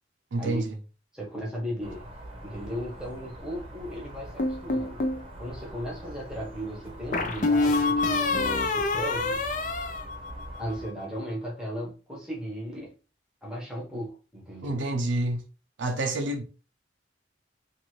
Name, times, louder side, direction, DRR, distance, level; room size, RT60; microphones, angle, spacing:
voice 1, 0.3-0.6 14.6-15.4 15.8-16.4, right 2 dB, 85° right, 0.5 m, -28 dB
voice 2, 1.1-2.0 2.4-5.0 5.4-9.4 10.6-12.9 13.4-14.8, equal, 5° right, 0.9 m, -36 dB
sound 1, 1.8-10.9, right 1 dB, 30° right, 0.7 m, -44 dB
sound 2, 4.4-5.2 7.1-10.7, left 3 dB, 45° left, 0.4 m, -26 dB
2.6 x 2.5 x 3.0 m
head